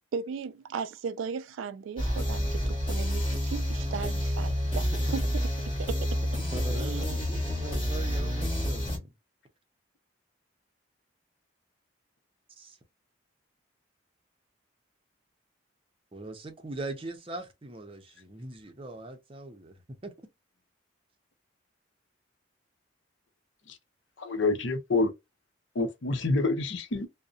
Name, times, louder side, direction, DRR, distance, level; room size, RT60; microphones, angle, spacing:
voice 1, 0.1-5.5 5.8-6.2 6.8-7.0, right 6 dB, 80° right, 0.3 m, -36 dB
sound 1, 2.0-9.0, equal, 25° left, 1.2 m, -29 dB
voice 2, 3.9-4.2 4.9-5.0 6.5-9.1 12.6-12.8 16.1-20.1, right 2 dB, 30° right, 0.6 m, -40 dB
voice 3, 24.2-25.1 25.7-27.1, left 3 dB, 70° left, 0.7 m, -27 dB
2.7 x 2.1 x 2.4 m
head